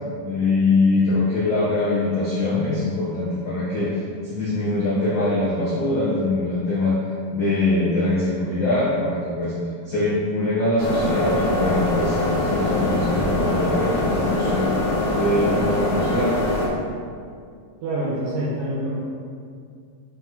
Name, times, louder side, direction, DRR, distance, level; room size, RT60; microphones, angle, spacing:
voice 1, 0.2-7.0 7.3-9.5 9.8-14.7 15.1-16.4, left 2 dB, 85° left, -9 dB, 1.0 m, -23 dB
sound 1, 10.8-16.7, left 1 dB, 55° left, 0.5 m, -23 dB
voice 2, 17.8-19.0, right 1 dB, 70° right, -8 dB, 2.8 m, -26 dB
5.8 x 5.7 x 3.9 m, 2.3 s
omnidirectional pair, 4.0 m